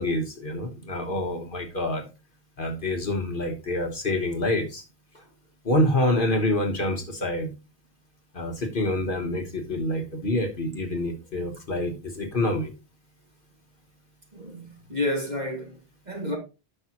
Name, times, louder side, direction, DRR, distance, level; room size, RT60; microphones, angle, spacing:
voice 1, 0.0-2.0 2.6-4.8 5.6-7.5 8.3-12.7, left 1 dB, 50° left, 1.3 m, -27 dB
voice 2, 14.3-15.8 16.1-16.4, left 1 dB, 35° right, 2.2 m, -30 dB
10.5 x 6.0 x 2.9 m
omnidirectional pair, 1.2 m